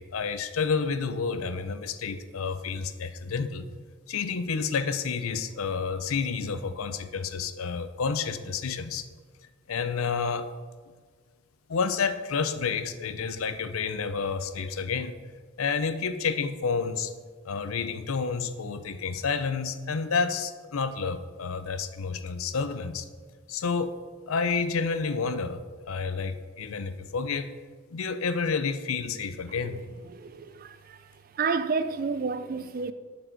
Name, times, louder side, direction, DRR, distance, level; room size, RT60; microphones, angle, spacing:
voice 1, 0.0-3.7 4.1-9.1 9.7-10.5 11.7-15.2 15.6-17.1 17.4-23.0 23.5-23.9 24.3-25.6 25.9-27.5 27.9-29.8, left 5 dB, 80° left, 0.5 m, -29 dB
voice 2, 30.1-31.0 31.3-32.9, right 4 dB, 45° right, 0.4 m, -30 dB
6.6 x 6.3 x 4.5 m
head